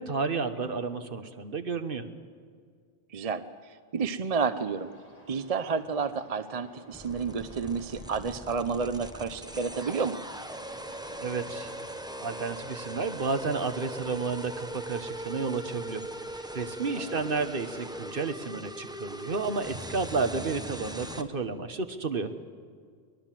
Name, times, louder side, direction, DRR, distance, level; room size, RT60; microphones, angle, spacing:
voice 1, 0.0-2.1 11.2-11.8 12.2-16.0 16.3-22.3, right 4 dB, 55° right, 8 dB, 1.4 m, -31 dB
voice 2, 3.1-3.4 3.9-4.9 5.3-10.2 17.0-17.5, right 5 dB, 40° right, 11 dB, 0.7 m, -30 dB
sound 1, 4.5-13.7, left 1 dB, 35° left, 3.1 m, -53 dB
sound 2, 6.9-21.2, right 1 dB, 5° right, 0.9 m, -40 dB
22.5 x 21.0 x 7.6 m, 2.1 s
omnidirectional pair, 1.1 m